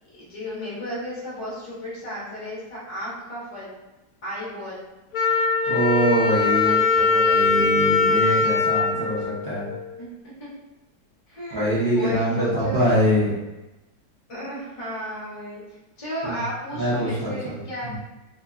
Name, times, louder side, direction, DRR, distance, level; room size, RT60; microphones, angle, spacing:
voice 1, 0.1-3.7 4.2-4.8 6.5-7.2 10.0-10.5 11.3-12.9 14.3-15.6 16.0-18.0, equal, 55° left, -7 dB, 0.3 m, -33 dB
Wind instrument woodwind instrument, 5.1-9.9, left 4 dB, 70° left, 0.8 m, -21 dB
voice 2, 5.7-9.7 11.5-13.3 16.2-16.4 16.7-18.0, equal, 65° right, -10 dB, 0.6 m, -24 dB
2.8 x 2.5 x 2.4 m, 1.0 s
omnidirectional pair, 1.9 m